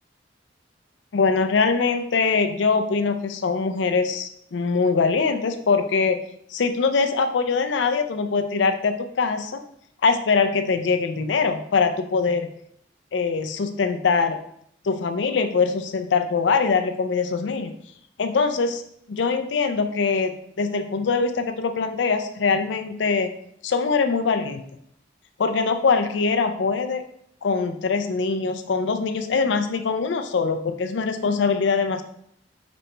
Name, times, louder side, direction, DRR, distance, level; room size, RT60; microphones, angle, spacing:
voice 1, 1.1-6.2 6.5-9.6 10.0-12.5 13.1-14.4 14.8-17.7 18.2-18.8 19.1-23.3 23.6-24.6 25.4-27.0 27.4-32.0, left 4 dB, 85° left, 7 dB, 0.4 m, -23 dB
5.1 x 3.0 x 3.3 m, 0.68 s
head